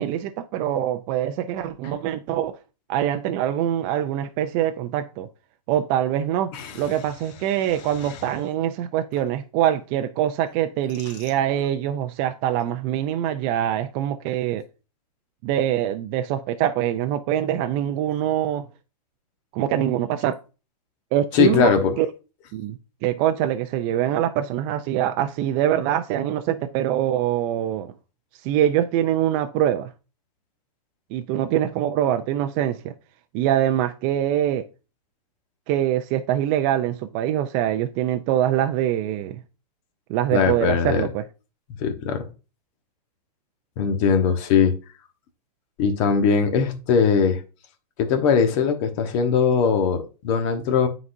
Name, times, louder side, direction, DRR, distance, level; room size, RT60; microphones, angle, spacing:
voice 1, 0.0-2.6 2.9-5.3 5.7-14.6 15.4-18.7 19.5-20.4 21.1-22.1 22.5-27.9 28.4-29.9 31.1-32.9 33.3-34.7 35.7-39.4 40.1-41.2, right 11 dB, 35° right, 0.5 m, -24 dB
voice 2, 21.3-21.9 40.3-41.1 41.8-42.2 43.8-44.7 45.8-47.4 48.0-50.9, left 6 dB, 45° left, 1.2 m, -20 dB
9.4 x 4.0 x 2.6 m
hypercardioid pair, 125°, 21 cm